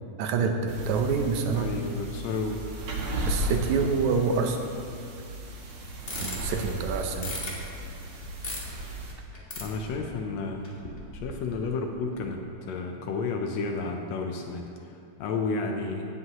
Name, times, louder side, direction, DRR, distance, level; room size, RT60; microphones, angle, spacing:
voice 1, 0.2-1.7 3.3-4.6 6.2-7.4, right 5 dB, 75° right, 4 dB, 2.0 m, -27 dB
sound 1, 0.7-9.1, right 1 dB, 55° right, 1.7 m, -35 dB
voice 2, 1.5-2.7 9.6-10.6 11.1-16.1, left 4 dB, 75° left, 3 dB, 1.7 m, -32 dB
sound 2, 5.9-10.3 10.6-11.6 11.9-12.2, left 1 dB, 35° left, 0.9 m, -39 dB
17.5 x 7.8 x 3.0 m, 2.5 s
omnidirectional pair, 3.5 m